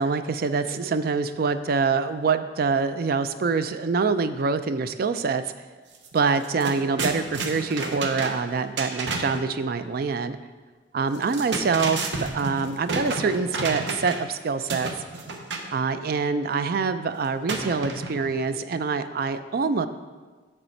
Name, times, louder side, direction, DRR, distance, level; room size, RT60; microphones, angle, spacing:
voice 1, 0.0-5.4 6.1-10.4 10.9-14.9 15.7-19.9, right 4 dB, 55° right, 11 dB, 0.4 m, -25 dB
sound 1, 5.9-6.1 6.4-9.5 11.1-14.3 14.7-15.7 17.5-18.4, right 3 dB, 80° right, 0.8 m, -31 dB
7.2 x 6.7 x 4.4 m, 1.4 s
head